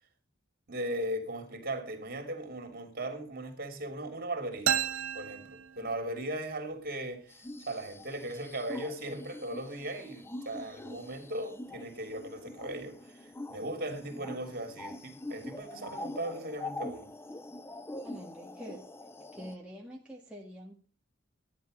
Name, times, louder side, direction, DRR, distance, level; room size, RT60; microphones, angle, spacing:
voice 1, 0.7-4.8 5.1-17.1, right 1 dB, 50° right, 3.1 m, -38 dB
sound 1, 4.7-6.4, right 9 dB, 75° right, 0.7 m, -32 dB
sound 2, 7.3-19.6, left 2 dB, 10° left, 0.6 m, -44 dB
voice 2, 18.0-18.9 19.3-20.7, equal, 5° right, 1.9 m, -46 dB
13.5 x 10.5 x 5.2 m
head